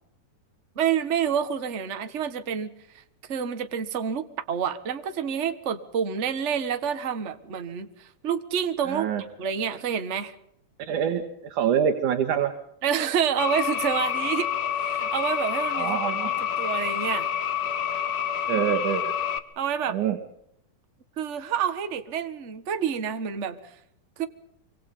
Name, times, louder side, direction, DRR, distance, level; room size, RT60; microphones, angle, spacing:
voice 1, 0.7-3.0 3.3-9.1 9.4-10.3 12.8-14.5 14.8-17.3 18.7-18.8 19.6-20.0 21.2-23.7 24.2-24.3, right 8 dB, 40° right, 9 dB, 1.1 m, -28 dB
voice 2, 8.9-9.2 10.8-12.5 15.7-16.5 18.5-19.1 19.9-20.2, right 8 dB, 75° right, 5 dB, 3.1 m, -26 dB
sound 1, 13.4-19.4, left 9 dB, 60° left, 1.1 m, -28 dB
25.5 x 25.5 x 5.6 m, 0.74 s
omnidirectional pair, 3.6 m